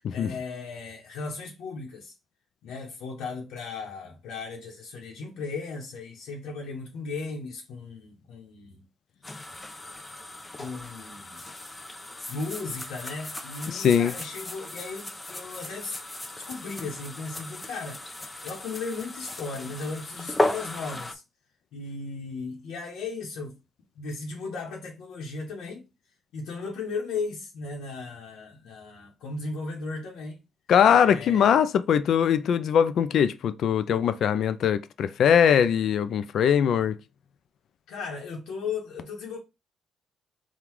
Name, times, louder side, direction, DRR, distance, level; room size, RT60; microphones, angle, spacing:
voice 1, 0.1-2.1 2.6-8.8 10.5-11.4 12.3-16.0 16.4-18.0 18.4-21.2 21.7-23.6 24.0-25.9 26.3-30.4 31.0-31.6 37.9-39.4, left 4 dB, 85° left, 0.9 m, -36 dB
sound 1, 9.2-21.1, left 1 dB, 20° left, 0.5 m, -35 dB
voice 2, 13.7-14.1 30.7-37.0, left 8 dB, 65° left, 0.4 m, -21 dB
3.8 x 2.3 x 4.5 m
cardioid pair, 90°, 0 cm